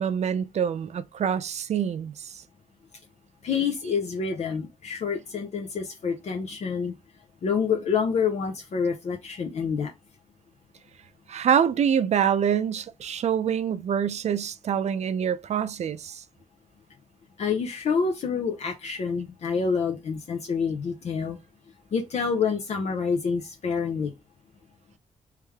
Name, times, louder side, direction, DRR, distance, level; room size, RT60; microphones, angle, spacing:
voice 1, 0.0-2.3 11.3-16.2, right 8 dB, 55° right, 0.5 m, -25 dB
voice 2, 3.4-6.9 7.4-9.9 17.4-21.4 21.9-24.1, left 5 dB, 55° left, 0.7 m, -27 dB
3.3 x 3.2 x 3.4 m
wide cardioid pair, 135°, 14 cm